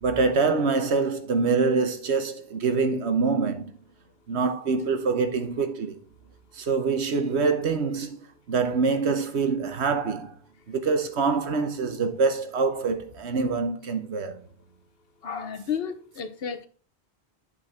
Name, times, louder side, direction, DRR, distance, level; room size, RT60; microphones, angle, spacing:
voice 1, 0.0-3.7 4.3-6.0 6.5-10.3 10.7-14.4, right 4 dB, 80° right, 1.3 m, -25 dB
voice 2, 15.2-16.7, left 7 dB, 65° left, 1.1 m, -32 dB
8.1 x 5.6 x 4.1 m
omnidirectional pair, 1.1 m